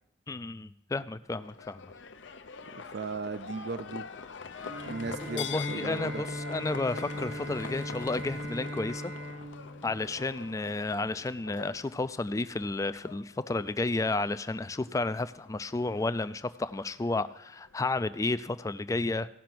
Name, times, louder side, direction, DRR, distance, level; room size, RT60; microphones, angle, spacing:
voice 1, 0.3-1.9 5.1-9.1 9.8-19.3, left 2 dB, 15° left, 15 dB, 0.3 m, -32 dB
Livestock farm animals working animals, 1.3-17.8, left 5 dB, 75° left, 0.7 m, -45 dB
voice 2, 2.7-4.1 4.8-6.2, right 4 dB, 60° right, 12 dB, 0.4 m, -37 dB
Bowed string instrument, 4.6-10.6, equal, 90° right, 4.7 m, -39 dB
16.0 x 5.6 x 6.0 m, 0.76 s
head